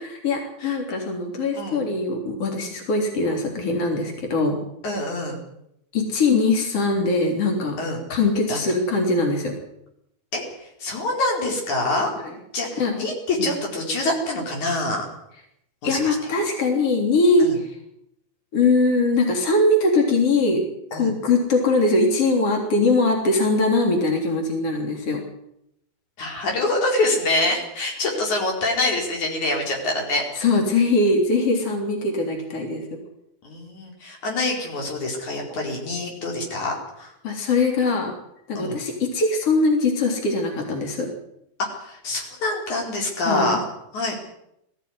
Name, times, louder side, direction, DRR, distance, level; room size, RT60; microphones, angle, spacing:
voice 1, 0.2-4.6 5.9-7.8 8.1-9.5 12.2-12.3 12.8-13.0 13.4-13.6 15.8-17.7 18.5-20.6 20.9-25.2 30.4-33.0 37.2-38.1 38.5-41.1 43.2-43.6, left 3 dB, 55° left, 2 dB, 4.4 m, -21 dB
voice 2, 4.8-5.4 7.8-8.0 8.5-8.6 10.3-10.4 10.8-12.1 12.5-15.1 15.8-16.2 17.4-17.6 20.9-21.1 26.2-30.5 33.4-37.1 38.6-38.8 41.7-43.6 43.9-44.1, left 2 dB, 80° left, 1 dB, 6.0 m, -25 dB
21.0 x 15.0 x 9.7 m, 0.78 s
omnidirectional pair, 3.3 m